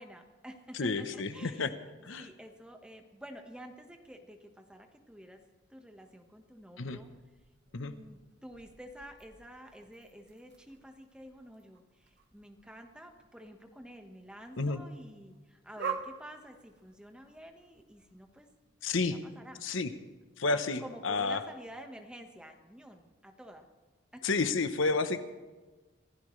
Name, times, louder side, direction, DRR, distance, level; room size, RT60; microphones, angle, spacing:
voice 1, 0.0-1.7 2.2-5.4 5.7-7.1 7.7-18.5 19.2-19.6 20.5-23.7 24.1-24.2, equal, 5° right, 4 dB, 1.4 m, -50 dB
voice 2, 0.8-1.7 2.0-2.3 6.8-7.0 7.7-7.9 14.6-14.8 18.8-19.2 19.6-19.9 20.4-21.4 24.2-25.2, left 3 dB, 75° left, 10 dB, 0.9 m, -30 dB
sound 1, 6.0-18.4, right 6 dB, 55° right, 1.4 m, -48 dB
25.5 x 16.0 x 3.3 m, 1.3 s
head